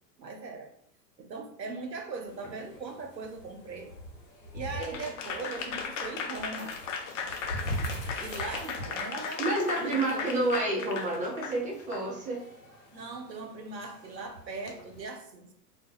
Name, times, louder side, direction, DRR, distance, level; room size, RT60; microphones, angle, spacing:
voice 1, 0.2-0.7 1.2-3.9 4.5-6.8 8.2-9.4 9.8-10.3 12.9-15.5, right 3 dB, 85° right, 5 dB, 0.7 m, -40 dB
sound 1, 2.3-15.0, equal, 80° left, 0.8 m, -43 dB
Applause / Crowd, 4.8-12.0, left 5 dB, 50° left, 0.5 m, -36 dB
voice 2, 9.4-12.4, right 2 dB, 15° right, -2 dB, 0.6 m, -29 dB
2.4 x 2.1 x 3.4 m, 0.67 s
figure-of-eight pair, 95°, 49 cm